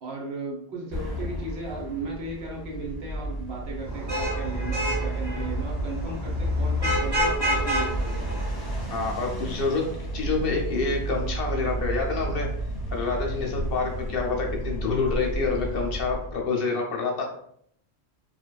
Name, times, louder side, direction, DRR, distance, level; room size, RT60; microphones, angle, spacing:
voice 1, 0.0-8.3, right 2 dB, 70° right, -1 dB, 1.0 m, -36 dB
sound 1, 0.9-16.4, right 1 dB, 25° left, 0.7 m, -32 dB
Vehicle horn car horn honking / Traffic noise roadway noise, 3.8-9.1, right 1 dB, 20° right, 1.1 m, -28 dB
voice 2, 8.9-12.5 12.9-17.2, left 4 dB, 65° left, 1 dB, 0.7 m, -27 dB
2.7 x 2.3 x 2.2 m, 0.67 s
omnidirectional pair, 1.1 m